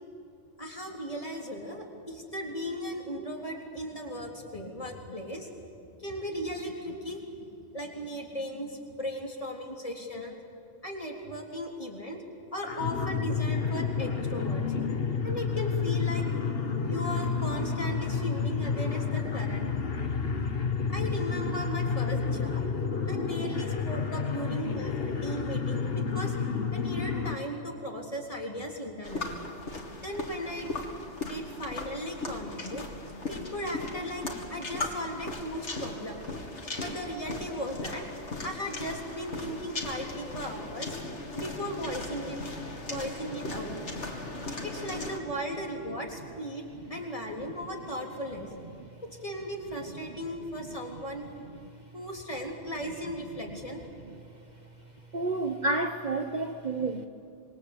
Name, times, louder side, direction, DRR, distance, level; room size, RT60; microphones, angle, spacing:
voice 1, 0.6-5.5 5.8-10.4 10.8-12.2 12.5-14.6 15.2-16.3 16.9-19.7 20.9-22.6 23.1-26.3 26.7-29.4 30.0-30.7 31.2-32.9 33.3-34.2 34.5-36.2 36.8-38.0 38.4-40.9 41.3-42.4 42.9-43.8 44.6-46.6 46.9-48.5 49.2-51.6 51.9-53.8, equal, 30° left, 0 dB, 3.7 m, -37 dB
sound 1, 12.6-27.4, left 5 dB, 55° left, 1.6 m, -30 dB
sound 2, 29.0-45.2, left 2 dB, 80° left, 2.7 m, -38 dB
voice 2, 55.1-57.1, right 2 dB, 40° right, 6 dB, 1.1 m, -30 dB
26.5 x 23.0 x 8.3 m, 2.6 s
omnidirectional pair, 1.2 m